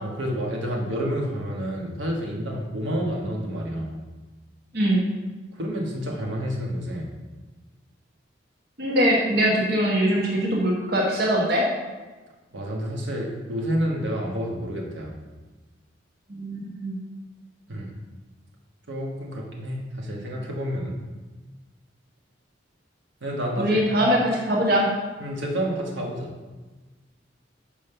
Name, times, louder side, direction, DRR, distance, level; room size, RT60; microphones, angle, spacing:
voice 1, 0.0-4.0 5.5-7.1 12.5-15.1 17.7-17.9 18.9-21.0 23.2-24.1 25.2-26.3, equal, 80° right, -1 dB, 1.3 m, -29 dB
voice 2, 8.8-11.6 16.3-17.0 23.6-24.9, equal, 60° right, -2 dB, 1.2 m, -22 dB
5.3 x 5.2 x 5.6 m, 1.2 s
head